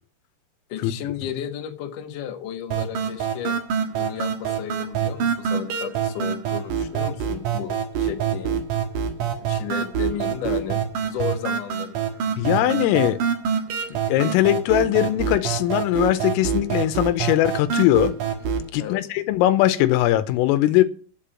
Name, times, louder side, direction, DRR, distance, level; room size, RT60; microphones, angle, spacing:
voice 1, 0.7-8.6 9.4-12.0 18.7-19.0, left 9 dB, 65° left, 2.2 m, -33 dB
sound 1, 2.7-18.7, right 7 dB, 60° right, 2.3 m, -26 dB
voice 2, 12.4-13.2 14.1-18.1 18.7-20.8, left 14 dB, 85° left, 3.4 m, -20 dB
8.7 x 8.2 x 8.9 m
omnidirectional pair, 5.8 m